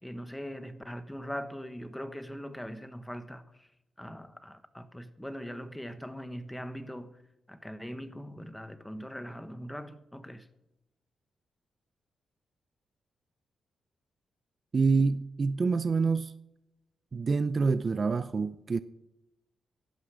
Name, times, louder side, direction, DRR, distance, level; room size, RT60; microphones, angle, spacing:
voice 1, 0.0-3.7 4.0-7.2 7.5-10.5, equal, 5° left, 1.3 m, -41 dB
voice 2, 14.7-16.3 17.1-18.8, right 4 dB, 40° right, 0.5 m, -27 dB
16.0 x 11.5 x 5.0 m
cardioid pair, 90°, 0 cm